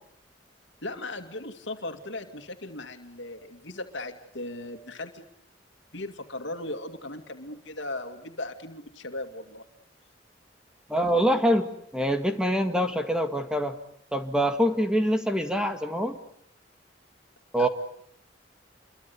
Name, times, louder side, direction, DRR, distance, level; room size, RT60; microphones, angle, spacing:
voice 1, 0.8-5.2 5.9-9.7 17.6-17.7, left 2 dB, 80° left, 6 dB, 2.4 m, -37 dB
voice 2, 10.9-13.8 14.1-16.2 17.5-17.7, equal, 5° right, 6 dB, 2.0 m, -25 dB
29.0 x 23.5 x 8.4 m, 0.65 s
head